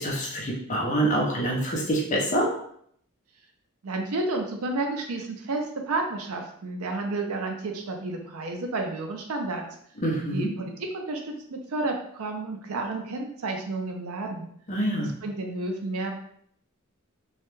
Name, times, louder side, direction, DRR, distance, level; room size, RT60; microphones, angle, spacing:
voice 1, 0.0-2.5 10.0-10.5 14.7-15.1, right 1 dB, 35° left, -2 dB, 0.6 m, -26 dB
voice 2, 3.8-9.6 10.3-14.5 15.0-16.2, right 2 dB, 90° right, 3 dB, 0.5 m, -31 dB
2.3 x 2.1 x 3.0 m, 0.67 s
head